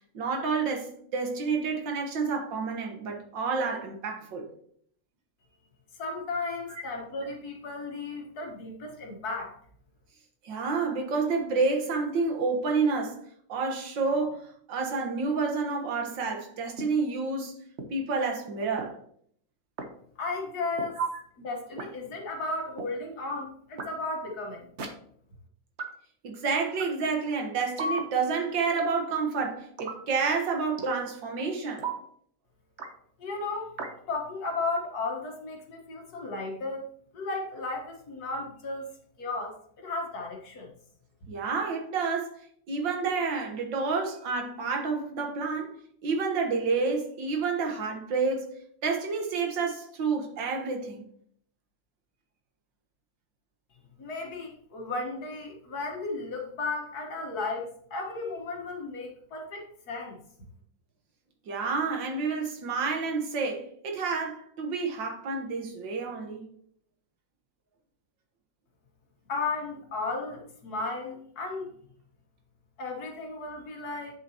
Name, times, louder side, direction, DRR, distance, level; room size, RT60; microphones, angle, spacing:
voice 1, 0.1-4.5 10.4-13.2 13.5-17.6 17.9-19.0 21.0-21.1 26.2-31.9 41.3-42.4 42.7-45.7 46.0-48.5 48.8-51.0 61.5-66.5, right 4 dB, 85° right, 2.0 m, -29 dB
voice 2, 6.0-9.6 20.2-21.0 21.4-24.7 33.2-33.7 34.1-36.8 37.1-38.9 39.2-40.7 54.0-60.2 69.3-71.7 72.8-74.2, left 3 dB, 60° left, 1.8 m, -34 dB
sound 1, 16.8-16.9 17.8-17.9 18.8-18.9 19.8-19.9 20.8-20.9 21.8-21.9 22.8-22.9 23.8-23.9 24.8-24.9 25.8-25.9 26.8-26.9 27.8-28.0 28.8-29.0 29.8-30.0 30.8-31.0 31.8-32.0 32.8-32.9 33.8-33.9, right 2 dB, 45° right, 1.1 m, -33 dB
8.1 x 6.8 x 2.9 m
omnidirectional pair, 2.0 m